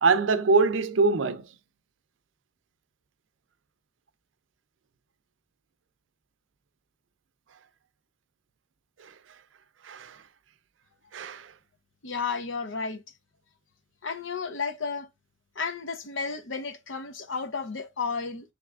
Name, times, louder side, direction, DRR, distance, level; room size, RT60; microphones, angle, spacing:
voice 1, 0.0-1.5 9.0-9.1 9.8-10.2 11.1-11.5, right 4 dB, 80° right, 0.5 m, -24 dB
voice 2, 12.0-13.0 14.0-15.1 15.6-18.5, left 5 dB, 85° left, 0.7 m, -32 dB
5.7 x 3.3 x 2.4 m
head